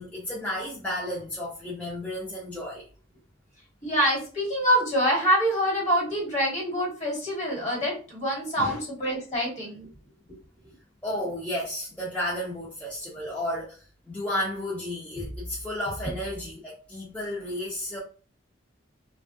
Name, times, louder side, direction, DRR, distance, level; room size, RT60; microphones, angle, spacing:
voice 1, 0.0-2.8 8.6-8.8 11.0-18.0, left 1 dB, 5° left, 0.7 m, -32 dB
voice 2, 3.8-9.9, equal, 35° left, 1.4 m, -25 dB
3.2 x 2.3 x 2.6 m
head